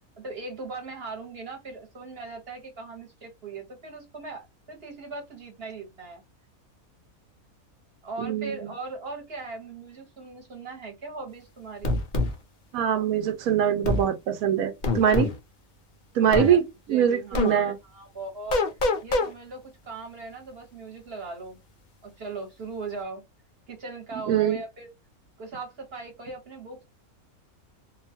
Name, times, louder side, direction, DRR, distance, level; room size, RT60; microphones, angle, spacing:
voice 1, 0.2-6.2 8.0-11.9 16.2-16.6 16.9-18.6 19.0-21.6 22.0-23.2 23.7-24.9 25.4-26.8, right 3 dB, 45° right, 1.1 m, -39 dB
voice 2, 8.2-8.7 12.7-15.3 16.1-17.8 24.3-24.6, right 9 dB, 75° right, 1.1 m, -23 dB
sound 1, 11.8-12.3 13.8-14.0 14.8-15.4 16.3-16.5 17.3-17.5 18.5-19.3, left 3 dB, 60° left, 0.5 m, -24 dB
2.7 x 2.3 x 2.6 m
omnidirectional pair, 1.5 m